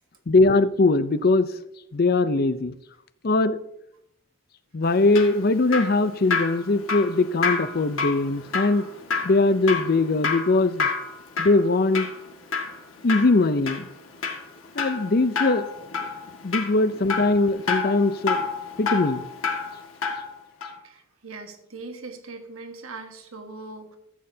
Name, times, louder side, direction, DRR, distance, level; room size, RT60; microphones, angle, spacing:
voice 1, 0.3-1.5 1.9-2.7 3.2-3.6 4.7-8.9 9.2-10.9 11.4-12.1 13.0-13.9 14.7-15.7 16.4-18.4 18.8-19.2, left 3 dB, 45° left, 14 dB, 0.5 m, -21 dB
Drip, 4.8-20.3 20.6-20.7, left 5 dB, 80° left, 1.9 m, -29 dB
voice 2, 20.8-24.0, right 3 dB, 85° right, 5 dB, 1.4 m, -40 dB
14.5 x 8.7 x 2.8 m, 0.77 s
head